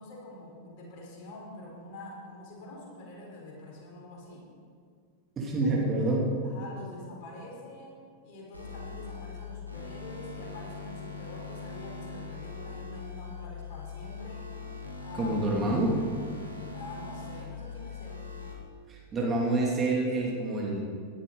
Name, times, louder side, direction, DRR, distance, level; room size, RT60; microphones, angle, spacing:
voice 1, 0.0-4.5 5.6-6.1 6.4-8.0 8.2-14.5 15.0-15.5 16.7-18.3, left 1 dB, 45° left, -2 dB, 4.4 m, -45 dB
voice 2, 5.4-6.2 15.2-15.9 18.9-20.8, right 2 dB, 25° right, -3 dB, 2.8 m, -27 dB
sound 1, 8.5-18.5, left 5 dB, 85° right, 2.3 m, -41 dB
17.5 x 12.5 x 4.1 m, 2.1 s
figure-of-eight pair, 90°, 0 cm